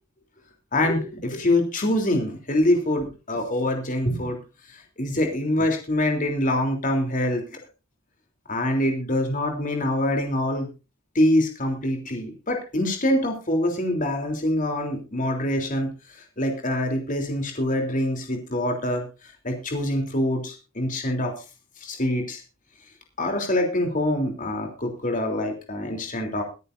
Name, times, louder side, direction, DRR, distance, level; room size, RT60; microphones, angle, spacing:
voice 1, 0.7-4.4 4.7-7.6 8.5-10.7 11.1-19.1 19.4-21.3 21.8-22.4 23.2-26.4, left 1 dB, 35° left, 4 dB, 3.3 m, -25 dB
22.5 x 10.0 x 2.6 m, 0.31 s
head